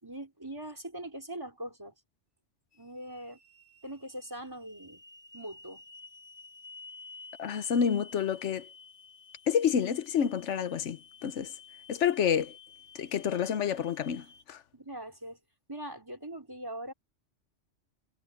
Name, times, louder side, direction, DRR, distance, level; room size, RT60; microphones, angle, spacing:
voice 1, 0.0-1.9 2.8-3.4 3.8-5.0 5.3-5.8 14.7-15.4 15.7-16.9, right 1 dB, 20° right, 4.4 m, -41 dB
sound 1, 2.7-14.4, left 4 dB, 25° left, 3.2 m, -53 dB
voice 2, 7.4-8.7 9.5-11.5 11.9-12.5 12.9-14.6, left 8 dB, 75° left, 1.2 m, -29 dB
omnidirectional pair, 1.2 m